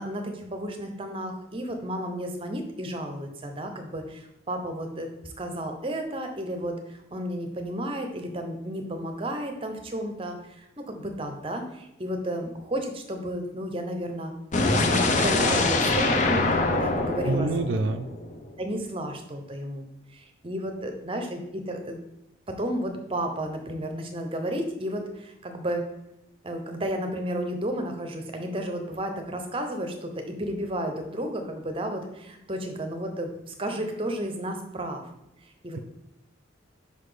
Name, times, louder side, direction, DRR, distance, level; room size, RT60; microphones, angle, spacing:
voice 1, 0.0-14.3 14.7-17.5 18.6-19.9 20.1-22.0 22.5-25.8 26.4-35.0 35.6-35.8, right 1 dB, 25° right, 5 dB, 0.7 m, -32 dB
sound 1, 14.5-18.5, left 2 dB, 35° left, 0.6 m, -24 dB
voice 2, 17.3-18.1 35.7-35.8, right 2 dB, 65° right, 7 dB, 0.4 m, -26 dB
5.2 x 4.1 x 4.9 m, 0.87 s
head